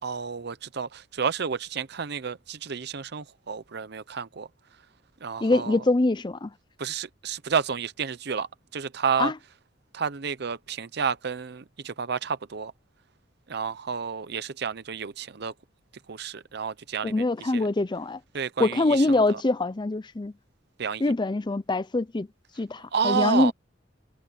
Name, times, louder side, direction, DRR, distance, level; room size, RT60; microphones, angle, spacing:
voice 1, 0.0-4.5 5.2-5.8 6.8-9.3 9.9-12.7 13.5-15.5 16.1-17.7 18.3-19.4 20.8-21.1 22.9-23.5, right 6 dB, 60° right, 0.7 m, -30 dB
voice 2, 5.4-6.5 9.2-9.3 17.0-18.2 18.6-20.3 21.0-22.3 22.6-23.5, left 2 dB, 25° left, 0.5 m, -24 dB
head